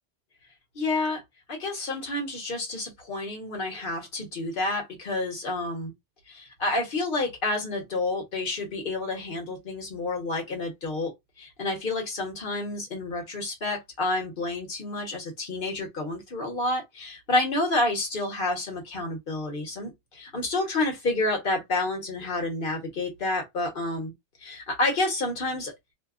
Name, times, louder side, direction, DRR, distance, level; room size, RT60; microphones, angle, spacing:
voice 1, 0.7-1.2 1.5-5.9 6.3-24.1 24.4-25.7, left 2 dB, 50° left, 1.2 m, -29 dB
2.8 x 2.2 x 2.4 m
omnidirectional pair, 1.2 m